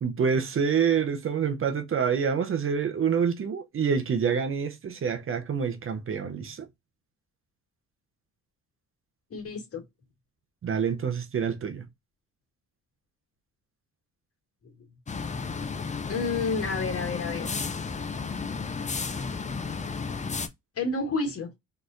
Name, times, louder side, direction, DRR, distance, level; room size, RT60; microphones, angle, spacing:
voice 1, 0.0-6.7 10.6-11.8, right 6 dB, 45° right, 0.8 m, -27 dB
voice 2, 9.3-9.8 14.6-14.9 16.1-17.6 20.7-21.5, left 3 dB, 50° left, 1.9 m, -30 dB
sound 1, 15.1-20.5, left 5 dB, 25° left, 0.6 m, -33 dB
4.1 x 3.3 x 2.6 m
cardioid pair, 90°, 30 cm